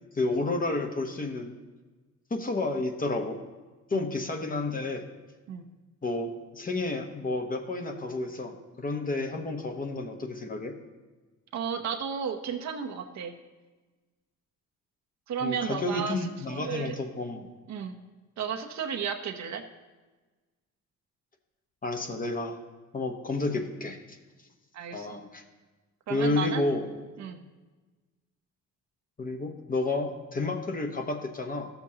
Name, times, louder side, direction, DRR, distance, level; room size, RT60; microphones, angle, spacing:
voice 1, 0.1-1.5 2.3-3.4 3.9-5.0 6.0-10.7 15.4-17.5 21.8-22.6 22.9-24.2 24.9-25.4 26.1-26.8 29.2-31.7, left 2 dB, 30° left, 4 dB, 1.0 m, -31 dB
voice 2, 11.5-13.3 15.3-17.0 17.7-17.9 18.4-19.6 24.7-25.2 26.1-26.7 27.2-27.4, right 7 dB, 65° right, 5 dB, 0.9 m, -33 dB
13.5 x 7.0 x 2.8 m, 1.3 s
cardioid pair, 90°, 30 cm